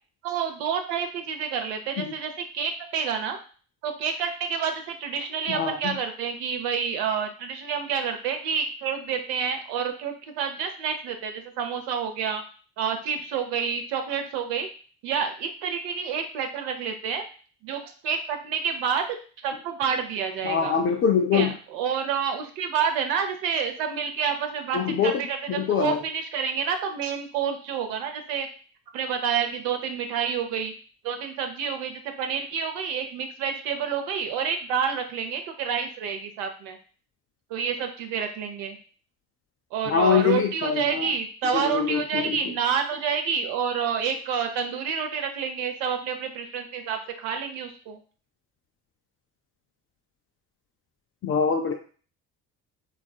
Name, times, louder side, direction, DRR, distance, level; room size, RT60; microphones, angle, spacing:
voice 1, 0.2-3.4 3.8-12.4 12.8-14.7 15.0-17.2 17.6-19.0 19.4-20.8 21.3-28.5 28.9-30.7 31.0-36.8 37.5-38.8 39.7-48.0, right 7 dB, 55° right, 5 dB, 0.6 m, -28 dB
voice 2, 5.5-6.0 20.4-21.5 24.7-25.2 25.5-26.0 39.9-41.1 41.5-42.4 51.2-51.7, left 6 dB, 30° left, 3 dB, 0.3 m, -24 dB
3.4 x 2.3 x 2.3 m, 0.40 s
figure-of-eight pair, 50°, 49 cm